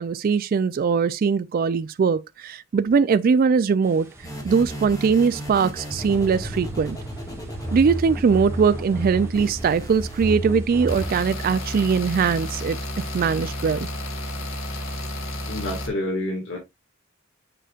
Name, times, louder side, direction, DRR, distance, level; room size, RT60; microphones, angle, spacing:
voice 1, 0.0-4.1 4.4-7.0 7.7-12.8 13.1-13.9, right 5 dB, 45° right, 0.3 m, -21 dB
sound 1, 3.8-12.6, right 2 dB, 15° right, 1.6 m, -49 dB
sound 2, 4.2-11.1, right 1 dB, 20° left, 1.7 m, -32 dB
sound 3, 10.9-15.9, left 1 dB, 80° left, 1.6 m, -31 dB
voice 2, 15.5-16.6, left 1 dB, 65° left, 1.9 m, -28 dB
6.7 x 6.2 x 2.4 m
head